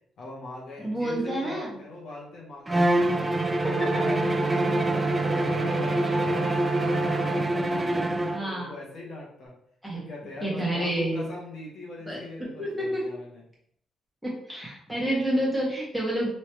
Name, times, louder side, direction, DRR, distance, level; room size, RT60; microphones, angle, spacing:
voice 1, 0.2-4.8 5.2-9.5 9.9-13.4, left 2 dB, 65° left, -3 dB, 1.0 m, -41 dB
voice 2, 0.8-1.8 3.6-4.0 8.3-8.7 9.8-10.0 10.4-11.2 12.1-13.1 14.2-16.3, right 1 dB, ahead, -5 dB, 1.4 m, -29 dB
Bowed string instrument, 2.7-8.5, right 1 dB, 20° right, 0.3 m, -26 dB
Wind instrument woodwind instrument, 3.0-7.5, right 3 dB, 70° right, 0.8 m, -30 dB
3.2 x 3.0 x 3.0 m, 0.70 s
cardioid pair, 90°, 0 cm